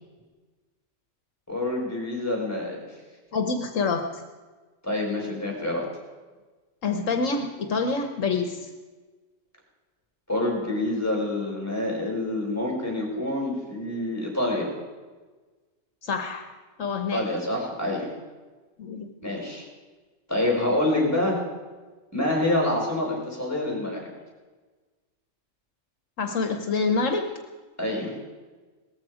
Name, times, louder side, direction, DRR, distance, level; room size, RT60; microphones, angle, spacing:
voice 1, 1.5-2.8 4.8-5.8 10.3-14.7 17.1-18.1 19.2-19.7 20.3-21.4 22.1-24.1 27.8-28.1, left 1 dB, 10° left, -1 dB, 4.8 m, -27 dB
voice 2, 3.3-4.2 6.8-8.7 16.0-16.5 16.8-17.3 18.8-19.1 26.2-27.3, left 4 dB, 75° left, 6 dB, 1.4 m, -26 dB
18.0 x 14.0 x 5.0 m, 1.3 s
omnidirectional pair, 1.4 m